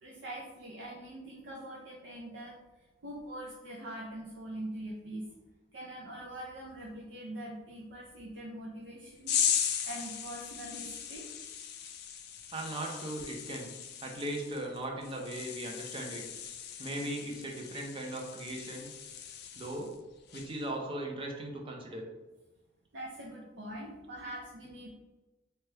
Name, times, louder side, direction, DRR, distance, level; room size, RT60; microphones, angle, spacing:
voice 1, 0.0-2.6 3.0-5.3 5.7-9.3 9.8-11.3 22.9-24.9, right 1 dB, 75° right, -4 dB, 0.5 m, -43 dB
sound 1, 9.3-20.0 20.3-20.7, left 8 dB, 60° left, 0.3 m, -37 dB
voice 2, 12.5-13.7 14.0-16.2 16.8-18.9 19.6-19.9 20.3-22.0, right 1 dB, 30° right, 1 dB, 0.5 m, -38 dB
2.8 x 2.2 x 3.2 m, 1.1 s
head